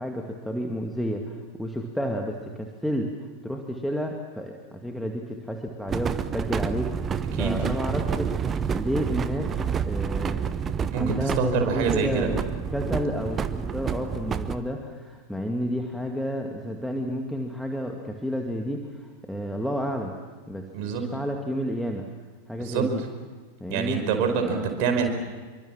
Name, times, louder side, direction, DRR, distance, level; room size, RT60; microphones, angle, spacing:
voice 1, 0.0-9.5 9.8-10.4 11.0-12.4 12.7-20.1 20.5-20.7 20.9-22.1 22.5-23.0 23.6-24.0 24.4-24.7, equal, ahead, 2 dB, 2.2 m, -31 dB
sound 1, 5.9-14.6, right 7 dB, 20° right, 1.1 m, -29 dB
voice 2, 10.9-12.3 20.7-21.0 22.6-22.9 23.7-25.1, right 6 dB, 45° right, 5 dB, 5.1 m, -25 dB
27.0 x 24.5 x 7.5 m, 1.4 s
figure-of-eight pair, 90°, 0 cm